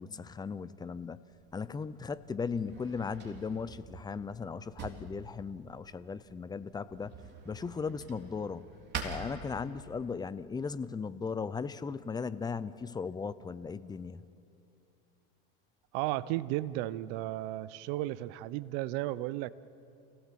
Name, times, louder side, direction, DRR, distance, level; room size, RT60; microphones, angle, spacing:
voice 1, 0.0-7.1 7.4-8.7 9.0-14.3, left 5 dB, 15° left, 15 dB, 0.6 m, -37 dB
Drawer open or close, 1.3-10.1, right 5 dB, 35° right, 3.6 m, -46 dB
voice 2, 15.9-19.5, right 16 dB, 60° right, 17 dB, 0.8 m, -34 dB
29.0 x 17.0 x 7.6 m, 2.7 s
supercardioid pair, 120°, 30 cm